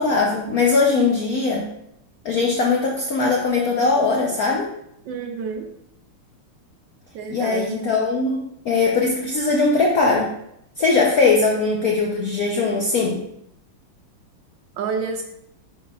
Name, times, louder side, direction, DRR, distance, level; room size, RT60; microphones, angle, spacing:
voice 1, 0.0-1.7 2.2-4.7 7.3-10.3 10.8-13.2, left 4 dB, 75° left, -1 dB, 0.8 m, -20 dB
voice 2, 5.1-5.7 7.1-7.7 14.8-15.2, right 5 dB, 75° right, 4 dB, 1.1 m, -28 dB
10.0 x 4.1 x 2.3 m, 0.77 s
omnidirectional pair, 2.4 m